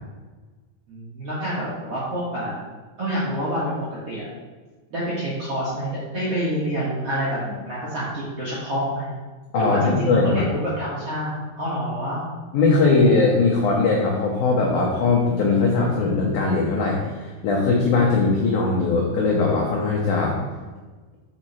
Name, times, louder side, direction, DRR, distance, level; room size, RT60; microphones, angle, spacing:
voice 1, 0.9-2.6 3.0-3.7 4.1-4.3 4.9-9.1 9.5-12.2, equal, 60° right, -9 dB, 1.6 m, -27 dB
voice 2, 9.5-10.4 12.5-20.4, left 3 dB, 85° left, -2 dB, 1.7 m, -20 dB
7.7 x 5.0 x 4.3 m, 1.3 s
omnidirectional pair, 5.1 m